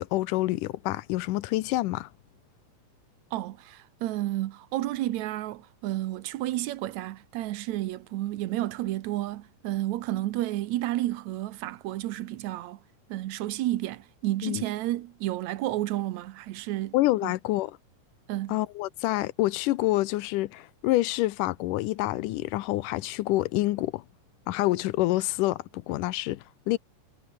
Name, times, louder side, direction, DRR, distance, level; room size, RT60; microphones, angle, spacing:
voice 1, 0.0-2.1 14.4-14.6 16.9-17.8 18.5-24.0 24.5-26.8, left 17 dB, 85° left, 2.3 m, -27 dB
voice 2, 3.3-12.8 13.1-16.9 17.2-17.3 18.3-18.6, right 15 dB, 70° right, 2.0 m, -31 dB
omnidirectional pair, 3.7 m